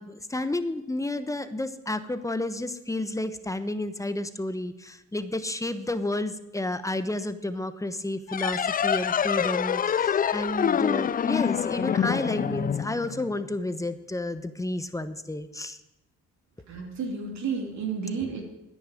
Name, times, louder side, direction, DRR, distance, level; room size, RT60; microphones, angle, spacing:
voice 1, 0.0-15.8, left 1 dB, 10° left, 11 dB, 1.1 m, -31 dB
sound 1, 8.3-13.5, left 8 dB, 30° left, 0.4 m, -26 dB
voice 2, 16.7-18.4, right 5 dB, 65° right, -1 dB, 2.9 m, -31 dB
10.5 x 9.9 x 9.1 m, 0.91 s
cardioid pair, 90°, 30 cm